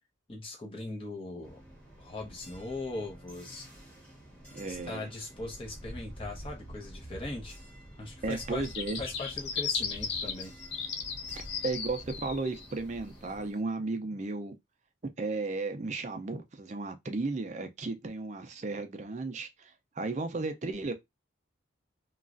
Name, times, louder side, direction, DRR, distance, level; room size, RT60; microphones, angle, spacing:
voice 1, 0.3-1.6 2.0-3.7 4.7-7.6 8.0-8.7 9.0-10.5, left 2 dB, 30° left, 0.8 m, -40 dB
sound 1, 1.4-13.5, equal, 5° left, 1.1 m, -48 dB
voice 2, 4.5-5.1 8.2-9.0 11.6-14.5 15.2-20.9, right 3 dB, 35° right, 0.4 m, -34 dB
sound 2, 8.6-12.7, left 6 dB, 55° left, 0.5 m, -35 dB
3.0 x 2.3 x 2.5 m
head